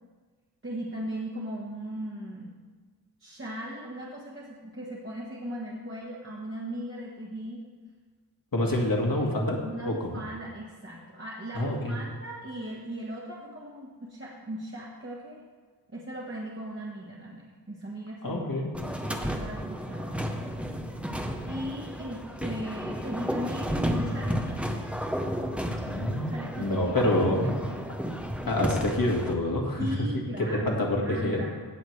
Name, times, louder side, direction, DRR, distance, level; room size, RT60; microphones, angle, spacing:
voice 1, 0.6-2.6 3.2-7.6 8.7-8.8 9.1-15.4 15.9-18.6 19.1-20.5 21.5-24.8 26.3-27.8 29.8-31.5, equal, 30° right, -6 dB, 1.4 m, -38 dB
voice 2, 8.5-9.6 9.9-10.2 11.5-12.0 18.2-18.7 25.9-27.5 28.5-29.9 30.4-31.4, left 1 dB, 55° left, -1 dB, 1.8 m, -27 dB
sound 1, 18.7-29.3, equal, 5° right, 0.8 m, -32 dB
17.0 x 6.4 x 3.2 m, 1.5 s
wide cardioid pair, 80°, 41 cm